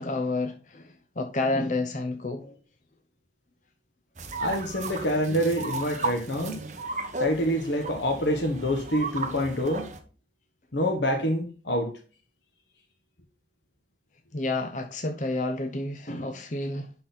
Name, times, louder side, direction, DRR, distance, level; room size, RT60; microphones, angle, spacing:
voice 1, 0.0-2.6 14.3-16.9, left 2 dB, 45° left, 0.8 m, -30 dB
sound 1, 4.2-10.0, right 3 dB, 40° right, 1.3 m, -35 dB
voice 2, 4.4-6.7 7.2-9.9 10.7-12.0, equal, 80° left, 1.5 m, -26 dB
11.0 x 4.1 x 4.1 m
head